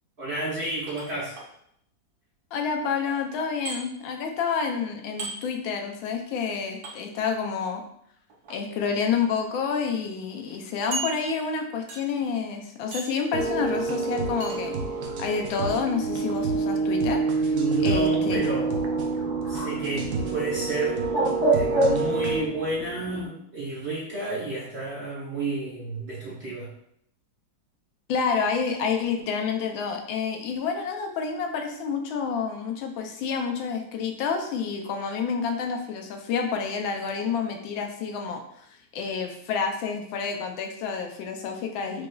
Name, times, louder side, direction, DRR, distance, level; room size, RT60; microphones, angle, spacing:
voice 1, 0.2-1.4 17.5-19.0 19.5-21.0 21.5-26.7, right 2 dB, 45° right, -7 dB, 1.0 m, -31 dB
sound 1, 0.9-1.5 3.7-3.8 5.2-5.4 6.8-7.0 8.3-8.6 9.3-9.4 9.8-9.9 10.9-11.5 11.9-12.2 12.9-13.2 14.4-14.6, right 4 dB, 70° right, 1.5 m, -35 dB
voice 2, 2.5-7.8 8.5-14.8 15.2-17.2 17.8-18.4 28.1-38.4 38.9-42.1, left 5 dB, 80° left, 3 dB, 1.4 m, -29 dB
sound 2, 13.3-22.4, right 4 dB, 85° right, 0.7 m, -27 dB
Bird, 17.7-23.3, right 1 dB, 15° left, 0.7 m, -29 dB
4.8 x 3.0 x 2.3 m, 0.70 s
omnidirectional pair, 2.1 m